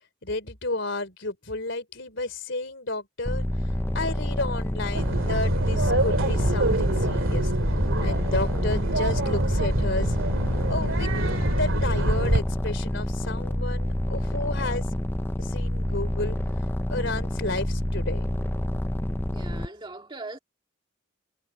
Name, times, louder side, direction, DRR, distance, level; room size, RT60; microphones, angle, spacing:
voice 1, 0.2-7.5 8.0-10.2 10.7-11.1 11.5-14.8 15.4-18.3, left 2 dB, 55° left, 4.0 m, -32 dB
sound 1, 3.2-19.7, left 1 dB, 10° left, 0.6 m, -28 dB
sound 2, 4.9-12.4, right 1 dB, 70° right, 2.4 m, -25 dB
voice 2, 19.3-20.4, right 2 dB, 20° right, 2.1 m, -39 dB
head